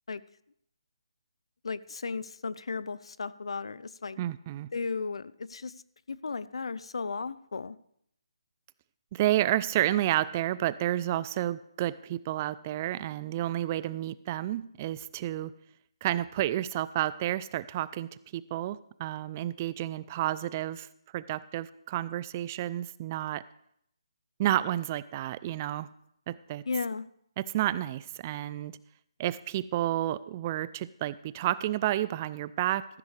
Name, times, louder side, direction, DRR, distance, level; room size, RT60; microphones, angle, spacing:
voice 1, 1.6-4.2 4.7-5.7 6.1-7.8 26.7-27.1, left 4 dB, 70° left, 18 dB, 0.6 m, -35 dB
voice 2, 4.2-4.7 9.1-15.5 16.0-20.9 21.1-23.4 24.4-25.9 26.3-26.6 27.4-28.7 29.2-32.8, right 13 dB, 25° right, 18 dB, 0.4 m, -30 dB
14.5 x 12.0 x 3.3 m, 0.71 s
figure-of-eight pair, 155°, 3 cm